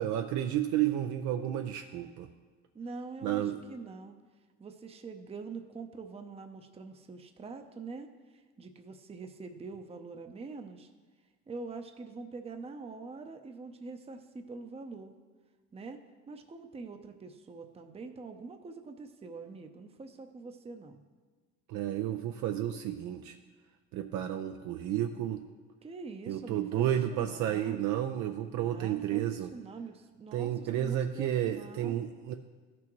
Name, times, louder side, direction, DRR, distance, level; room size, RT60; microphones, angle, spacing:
voice 1, 0.0-2.3 3.2-3.6 21.7-23.4 23.9-25.4 26.3-29.5 30.3-32.3, right 11 dB, 70° right, 6 dB, 0.5 m, -31 dB
voice 2, 2.7-4.2 4.6-10.9 11.5-15.1 15.7-16.0 16.3-21.0 25.8-27.8 28.5-32.0, right 4 dB, 20° right, 6 dB, 0.6 m, -44 dB
13.5 x 6.1 x 3.1 m, 1.4 s
supercardioid pair, 85°, 30 cm